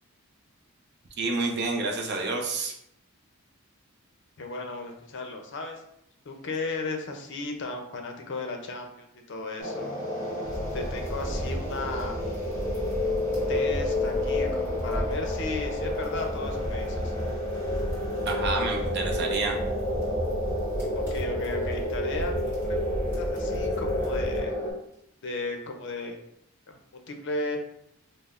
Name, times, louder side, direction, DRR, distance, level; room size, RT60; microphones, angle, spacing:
voice 1, 1.2-2.8 18.3-19.6, right 3 dB, 50° right, 2 dB, 0.5 m, -29 dB
voice 2, 4.4-5.8 6.3-9.9 10.7-12.2 13.2-17.1 20.9-24.5 25.2-26.2 26.7-27.6, left 2 dB, 55° left, 4 dB, 0.5 m, -35 dB
sound 1, 9.6-24.7, left 1 dB, 10° left, 0.9 m, -30 dB
sound 2, 10.4-24.4, equal, 10° right, 1.5 m, -34 dB
5.4 x 2.0 x 2.4 m, 0.75 s
head